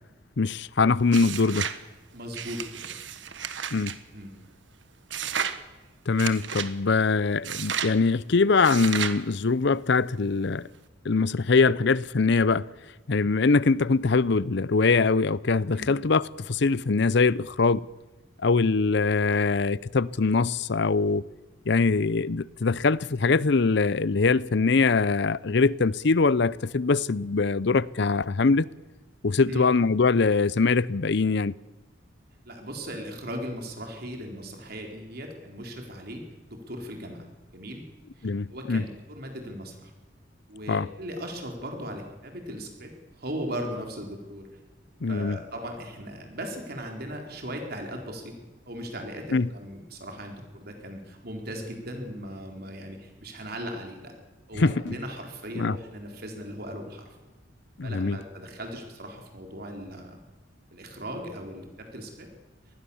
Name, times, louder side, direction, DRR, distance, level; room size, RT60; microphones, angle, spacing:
voice 1, 0.4-1.7 3.7-4.0 6.1-10.7 11.0-12.7 13.1-17.9 18.4-21.3 21.7-28.7 29.2-31.5 38.2-38.8 40.7-40.9 45.0-45.4 49.3-49.5 54.6-54.9 55.5-55.8 57.8-58.2, left 4 dB, 65° left, 0.6 m, -23 dB
sound 1, 1.1-1.8 2.3-4.0 5.1-5.6 6.2-6.7 7.4-8.0 8.6-9.2, right 8 dB, 70° right, 1.5 m, -32 dB
voice 2, 2.1-2.9 4.1-4.4 15.7-15.9 29.3-29.7 32.5-37.3 37.5-37.8 38.2-39.9 40.5-44.5 45.1-48.3 48.7-54.1 54.5-57.1 57.8-60.2 60.7-62.3, equal, 55° right, 4.1 m, -38 dB
26.0 x 20.0 x 7.2 m
head